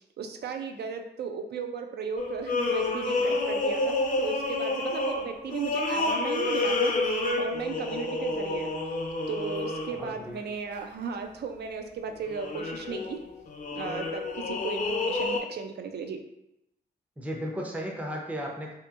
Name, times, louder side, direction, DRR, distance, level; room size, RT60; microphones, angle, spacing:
voice 1, 0.0-8.7 9.3-13.2 13.7-16.2, right 5 dB, 65° right, 5 dB, 0.4 m, -36 dB
sound 1, 2.2-10.2 10.7-10.8 12.1-15.4, left 2 dB, 45° left, 0.4 m, -29 dB
voice 2, 10.0-10.4 17.2-18.7, equal, 10° right, -1 dB, 0.5 m, -35 dB
2.8 x 2.6 x 2.3 m, 0.84 s
wide cardioid pair, 105°, 18 cm